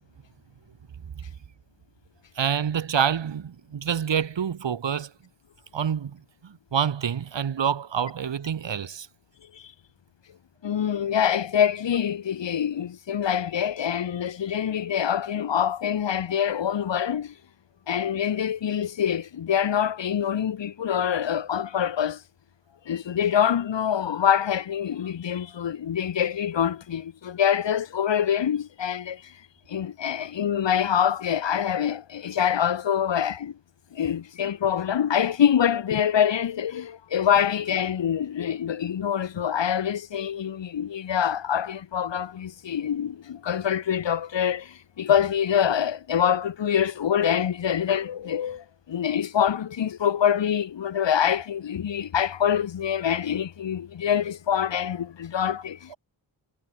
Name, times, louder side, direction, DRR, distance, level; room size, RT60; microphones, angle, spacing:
voice 1, 2.4-5.1 5.7-6.2 6.4-9.1 55.9-56.0, right 8 dB, 75° right, 4.7 m, -27 dB
voice 2, 10.6-17.3 17.9-22.2 22.9-29.2 29.7-33.5 34.0-44.6 45.0-48.6 48.9-55.8, left 9 dB, 75° left, 2.2 m, -25 dB
wide cardioid pair, 160°, 44 cm